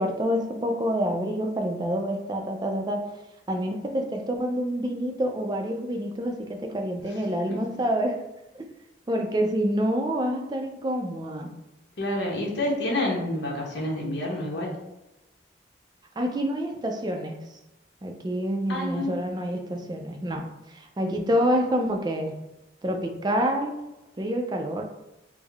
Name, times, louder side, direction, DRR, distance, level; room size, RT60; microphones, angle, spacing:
voice 1, 0.0-3.0 3.5-8.2 8.5-8.6 9.1-11.5 16.2-17.4 18.0-22.4 22.8-23.8 24.2-24.8, equal, 25° right, 3 dB, 0.3 m, -27 dB
voice 2, 12.0-14.7 18.7-19.2, left 1 dB, 75° left, -2 dB, 0.9 m, -28 dB
3.6 x 2.0 x 3.4 m, 0.96 s
head